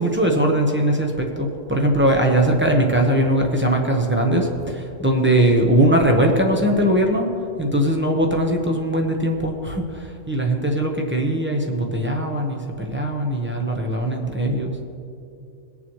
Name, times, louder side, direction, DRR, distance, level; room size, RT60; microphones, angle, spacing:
voice 1, 0.0-7.3 7.6-14.8, right 1 dB, 10° right, 0 dB, 0.8 m, -20 dB
20.5 x 7.2 x 3.1 m, 2.6 s
omnidirectional pair, 1.4 m